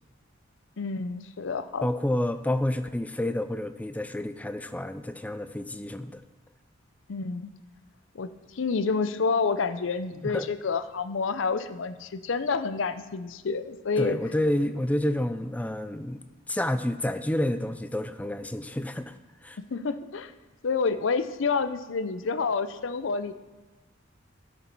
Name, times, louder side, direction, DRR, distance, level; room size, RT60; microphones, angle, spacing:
voice 1, 0.8-1.9 7.1-7.5 8.1-14.2 19.7-20.3 20.6-23.3, left 4 dB, 65° left, 11 dB, 0.5 m, -28 dB
voice 2, 1.8-6.2 10.2-10.5 14.0-16.2 16.5-19.1 19.4-19.6, left 1 dB, 5° left, 11 dB, 0.4 m, -29 dB
12.5 x 7.0 x 4.5 m, 1.2 s
head